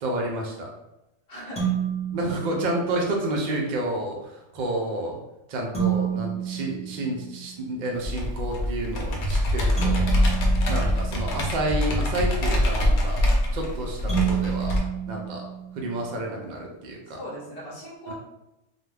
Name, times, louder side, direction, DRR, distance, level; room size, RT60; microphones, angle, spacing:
voice 1, 0.0-0.7 2.1-4.2 4.5-5.2 5.5-10.0 10.7-13.2 13.5-14.8 15.1-15.4 15.8-17.2 18.1-18.2, right 1 dB, 80° right, 0 dB, 0.4 m, -30 dB
voice 2, 1.3-1.7 17.1-18.1, equal, 40° left, -6 dB, 0.6 m, -39 dB
sound 1, 1.6-3.2 5.7-7.8 9.8-11.9 14.1-16.1, right 9 dB, 5° left, 0.8 m, -30 dB
Computer keyboard, 8.0-14.8, left 1 dB, 70° left, 0.9 m, -24 dB
2.3 x 2.2 x 3.2 m, 0.92 s
omnidirectional pair, 1.3 m